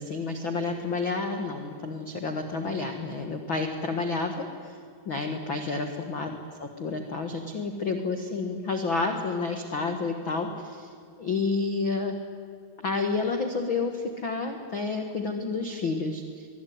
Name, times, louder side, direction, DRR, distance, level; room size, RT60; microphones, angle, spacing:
voice 1, 0.0-4.8 5.0-6.3 6.6-10.9 11.2-12.1 12.8-16.5, left 4 dB, 85° left, 5 dB, 1.0 m, -30 dB
24.5 x 22.0 x 9.6 m, 2.3 s
omnidirectional pair, 5.1 m